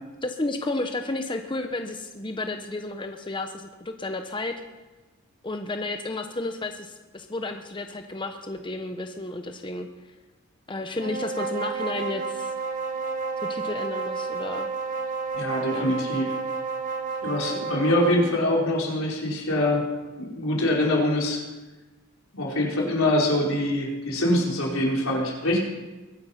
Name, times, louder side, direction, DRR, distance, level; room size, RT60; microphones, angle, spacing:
voice 1, 0.2-4.5 5.4-9.9 10.7-12.5 13.5-14.7 15.7-15.9, left 2 dB, 25° left, 6 dB, 0.9 m, -32 dB
sound 1, 10.9-18.3, right 4 dB, 40° right, 1.3 m, -31 dB
voice 2, 15.3-16.3 17.2-19.9 20.2-21.4 22.3-25.6, left 1 dB, 85° left, -2 dB, 4.3 m, -24 dB
22.5 x 9.6 x 5.8 m, 1.1 s
head